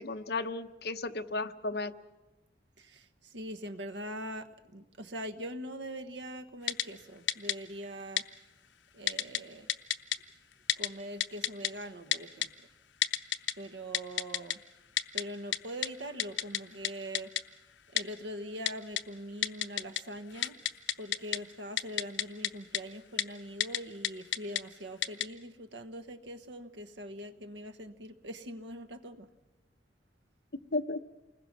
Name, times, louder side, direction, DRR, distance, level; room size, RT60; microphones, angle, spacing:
voice 1, 0.0-1.9 30.7-31.0, left 3 dB, 60° left, 7 dB, 0.9 m, -34 dB
voice 2, 2.8-8.2 8.9-9.7 10.8-12.5 13.6-14.6 15.1-17.3 17.9-20.6 21.0-29.3, equal, 80° right, 9 dB, 1.2 m, -42 dB
Typing, 6.7-6.8 7.3-7.5 8.2-8.3 9.1-9.4 9.7-10.2 10.7-10.9 11.2-11.7 12.1-12.5 13.0-13.5 13.9-14.5 15.0-15.2 15.5-15.6 15.8-15.9 16.2-16.6 16.8-16.9 17.1-17.4 18.0-18.1 18.7-19.0 19.4-20.0 20.3-21.4 21.8-22.5 22.7-22.8 23.2-23.3 23.6-23.8 24.0-24.6 25.0-25.2, left 10 dB, 90° left, 0.8 m, -29 dB
28.5 x 20.5 x 6.1 m, 1.1 s
head